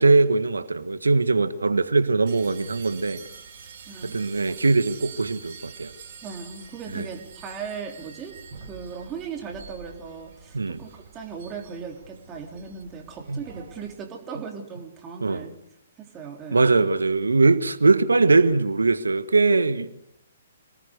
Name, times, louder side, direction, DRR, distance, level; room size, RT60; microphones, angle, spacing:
voice 1, 0.0-3.2 4.0-5.9 6.9-7.1 10.5-10.8 13.3-13.4 15.2-15.4 16.5-19.9, right 3 dB, 75° right, 1.5 m, -21 dB
sound 1, 2.3-13.9, right 6 dB, 45° right, 5.2 m, -46 dB
voice 2, 3.9-4.6 6.2-15.6 16.0-16.7, right 6 dB, 20° right, 3.5 m, -38 dB
27.0 x 19.0 x 6.6 m
figure-of-eight pair, 125°, 0 cm